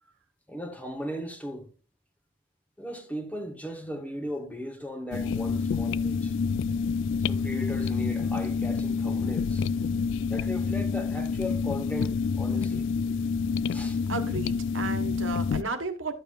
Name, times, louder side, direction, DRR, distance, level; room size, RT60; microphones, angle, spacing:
voice 1, 0.5-1.7 2.8-6.3 7.2-9.7 10.3-12.9 13.7-14.0, left 1 dB, 10° left, 1.0 m, -37 dB
sound 1, 5.1-15.6, left 5 dB, 70° left, 0.3 m, -28 dB
voice 2, 14.1-16.1, right 3 dB, 85° right, 1.3 m, -33 dB
12.0 x 6.9 x 2.4 m
head